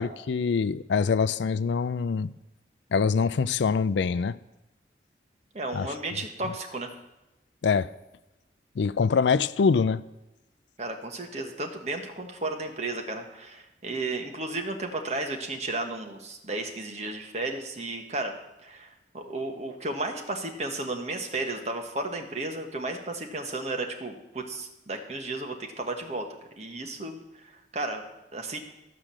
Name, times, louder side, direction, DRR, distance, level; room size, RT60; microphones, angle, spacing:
voice 1, 0.0-2.3 2.9-4.4 5.7-5.9 7.6-7.9 8.8-10.0, left 5 dB, 80° left, 0.4 m, -24 dB
voice 2, 5.5-6.9 10.8-18.4 18.6-26.3 26.6-27.2 27.7-28.0 28.3-28.6, right 2 dB, 40° right, 1.3 m, -33 dB
13.0 x 5.0 x 7.5 m
head